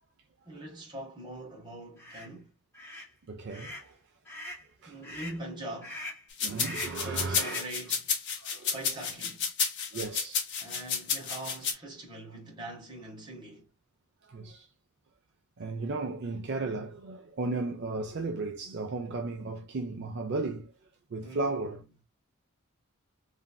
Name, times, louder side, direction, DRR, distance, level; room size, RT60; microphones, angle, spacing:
voice 1, 0.5-2.5 4.8-6.0 6.5-8.1 8.7-9.5 10.6-13.7 17.4-17.6 21.2-21.8, right 2 dB, 20° right, 1.1 m, -43 dB
sound 1, 2.0-2.3 2.7-3.1 3.5-3.9 4.3-4.7 5.0-5.4 5.8-6.2 6.6-7.0 7.3-7.7, left 1 dB, 10° left, 1.7 m, -41 dB
voice 2, 3.3-3.9 4.8-5.0 6.4-7.6 8.4-8.7 9.9-10.5 14.3-14.7 15.6-20.7 21.1-21.8, right 3 dB, 50° right, 0.4 m, -35 dB
sound 2, 6.4-11.7, left 6 dB, 55° left, 0.8 m, -31 dB
3.2 x 2.6 x 2.2 m
head